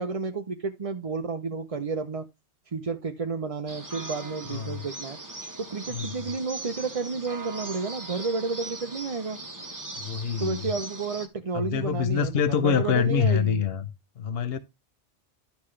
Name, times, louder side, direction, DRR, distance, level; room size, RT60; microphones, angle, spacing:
voice 1, 0.0-2.3 2.7-5.2 5.6-9.4 10.4-13.6, right 4 dB, 35° right, 0.7 m, -31 dB
sound 1, 3.7-11.3, right 2 dB, 15° right, 1.2 m, -40 dB
voice 2, 4.5-4.8 5.9-6.1 9.9-10.7 11.5-13.9 14.2-14.6, left 7 dB, 60° left, 0.9 m, -26 dB
11.5 x 5.8 x 3.2 m
omnidirectional pair, 1.2 m